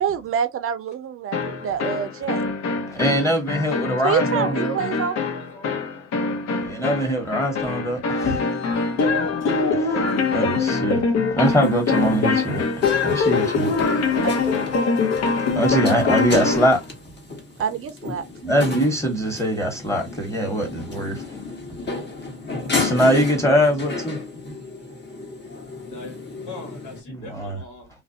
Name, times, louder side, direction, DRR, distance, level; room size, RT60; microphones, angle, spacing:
voice 1, 0.0-2.4 4.0-5.2 14.2-14.9 17.6-18.2, right 8 dB, 45° right, 0.5 m, -26 dB
sound 1, 1.3-16.8, left 4 dB, 60° left, 0.7 m, -23 dB
voice 2, 2.9-4.8 6.6-8.4 9.7-11.1 11.4-12.6 13.0-13.7 15.5-16.8 18.4-21.2 22.8-24.2 27.1-27.6, equal, 10° left, 1.2 m, -22 dB
sound 2, 11.4-27.0, left 3 dB, 35° left, 1.1 m, -33 dB
voice 3, 12.4-13.8 25.8-26.2 26.5-27.9, left 3 dB, 80° left, 1.1 m, -41 dB
2.5 x 2.0 x 2.6 m
cardioid pair, 90°, 30 cm